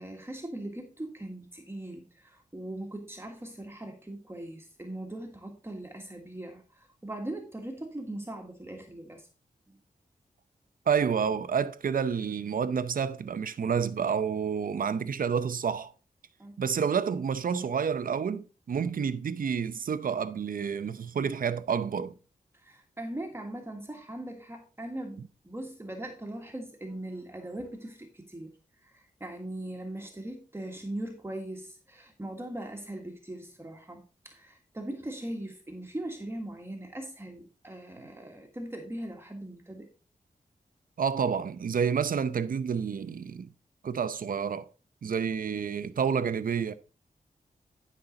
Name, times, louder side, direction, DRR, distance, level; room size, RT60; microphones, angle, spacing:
voice 1, 0.0-9.3 9.7-9.8 16.4-16.6 22.5-28.5 28.8-39.9, right 1 dB, 15° right, 1.5 m, -40 dB
voice 2, 10.9-15.9 16.6-22.1 41.0-43.5 43.8-44.7 45.0-46.8, right 6 dB, 70° right, 0.7 m, -29 dB
11.5 x 5.6 x 3.9 m
wide cardioid pair, 105°, 15 cm